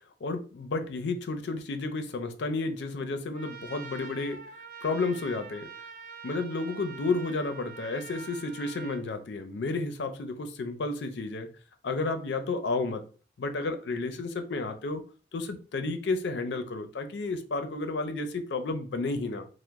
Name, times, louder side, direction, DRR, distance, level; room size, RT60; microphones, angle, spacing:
voice 1, 0.2-4.4 4.8-5.7 6.2-11.5 11.8-13.0 13.4-15.0 15.3-19.5, left 3 dB, 70° left, 0.4 m, -31 dB
Trumpet, 3.3-9.0, right 5 dB, 45° right, 0.4 m, -45 dB
2.9 x 2.0 x 3.4 m
head